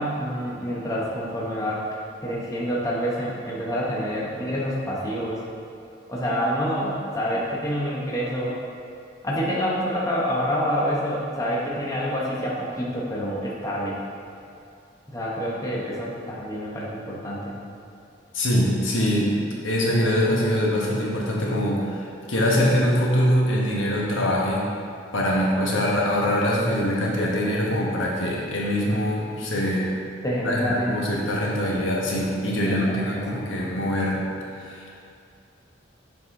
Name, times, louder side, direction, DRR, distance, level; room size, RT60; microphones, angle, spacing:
voice 1, 0.0-1.8 2.2-5.4 6.1-8.6 9.2-14.0 15.1-17.6 30.2-31.1 32.5-33.1 33.3-33.5, equal, 15° left, -6 dB, 0.8 m, -27 dB
voice 2, 18.3-19.4 19.6-24.6 25.1-29.9 30.4-34.2 34.6-35.0, equal, 85° left, -4 dB, 1.1 m, -23 dB
7.1 x 4.2 x 3.7 m, 2.6 s
head